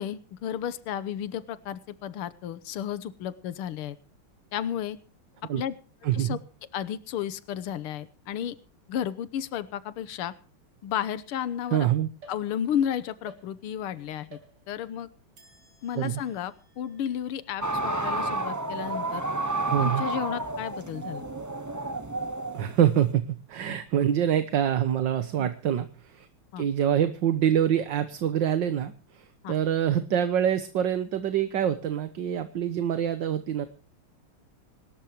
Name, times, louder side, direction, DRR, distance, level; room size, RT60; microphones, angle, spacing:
voice 1, 0.0-4.0 4.5-5.0 5.6-5.7 6.1-6.4 6.7-8.6 8.9-10.3 10.8-11.9 12.3-14.4 14.7-15.1 15.8-19.2 19.8-21.2 25.4-25.5 26.5-26.7 29.4-29.6, left 9 dB, 85° left, 16 dB, 1.9 m, -32 dB
voice 2, 6.0-6.4 11.7-12.1 16.0-16.2 19.7-20.0 22.5-26.3 26.6-33.7, right 10 dB, 60° right, 11 dB, 1.7 m, -25 dB
sound 1, 12.2-12.9 13.3-13.9 14.3-15.0 15.4-18.8, right 2 dB, 75° right, 5.1 m, -56 dB
sound 2, 17.6-23.1, right 2 dB, 20° right, 0.4 m, -31 dB
26.5 x 13.0 x 3.0 m, 0.36 s
omnidirectional pair, 2.4 m